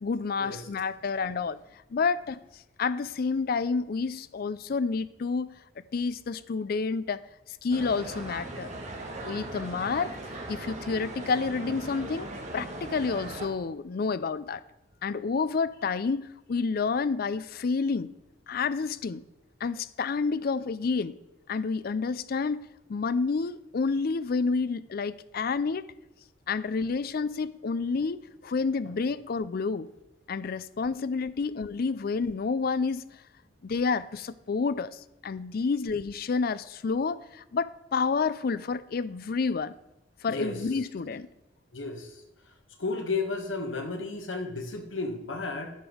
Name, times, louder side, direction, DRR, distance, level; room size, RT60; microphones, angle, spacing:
voice 1, 0.0-1.6 1.9-2.4 2.8-5.5 5.9-7.2 7.6-8.7 9.2-10.2 10.5-14.6 15.0-18.1 18.5-19.2 19.6-21.2 21.5-25.9 26.5-29.9 30.3-33.0 33.6-39.7 40.2-41.3, left 4 dB, 50° left, 0.4 m, -29 dB
sound 1, 7.7-13.5, right 1 dB, 40° right, 1.5 m, -39 dB
voice 2, 40.2-40.6 41.7-42.1 42.8-45.7, left 3 dB, 90° left, 1.5 m, -33 dB
10.5 x 5.3 x 6.2 m
head